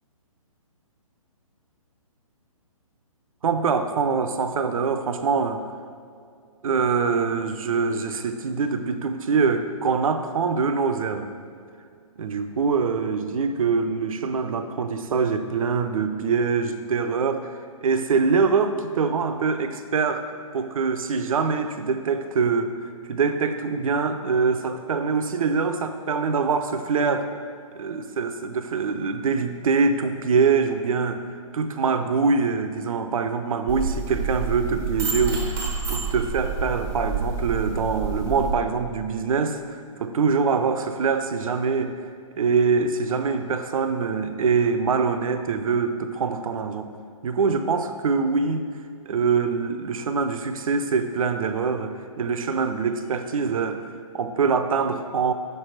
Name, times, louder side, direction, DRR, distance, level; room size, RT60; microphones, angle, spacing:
voice 1, 3.4-5.6 6.6-11.3 12.2-17.5 17.8-20.3 20.5-22.8 23.1-27.3 27.8-42.0 42.4-46.9 47.2-48.7 49.1-53.8 54.1-55.3, right 5 dB, 75° right, 9 dB, 0.5 m, -24 dB
sound 1, 33.7-38.5, right 4 dB, 15° right, 0.6 m, -28 dB
6.5 x 3.3 x 4.4 m, 2.3 s
hypercardioid pair, 140°, 18 cm